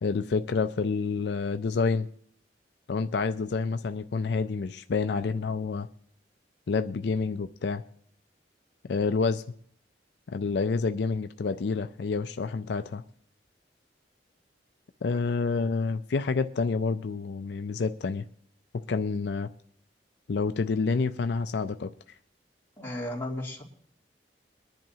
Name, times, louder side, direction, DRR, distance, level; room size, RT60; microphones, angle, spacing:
voice 1, 0.0-2.1 2.9-5.9 6.7-7.8 8.9-9.4 10.3-13.0 15.0-18.2 18.9-19.5 20.3-21.9, left 4 dB, 70° left, 10 dB, 0.4 m, -28 dB
voice 2, 22.8-23.6, left 1 dB, 15° left, -5 dB, 2.8 m, -34 dB
22.5 x 10.5 x 2.8 m, 0.62 s
head